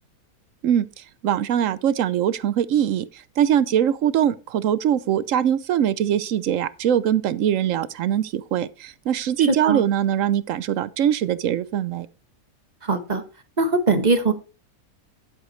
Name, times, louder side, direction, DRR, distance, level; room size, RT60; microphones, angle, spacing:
voice 1, 0.6-12.1, right 10 dB, 65° right, 0.9 m, -22 dB
voice 2, 9.5-9.8 12.8-13.2 13.6-14.3, right 3 dB, 30° right, 1.2 m, -21 dB
11.0 x 8.0 x 3.1 m
omnidirectional pair, 1.6 m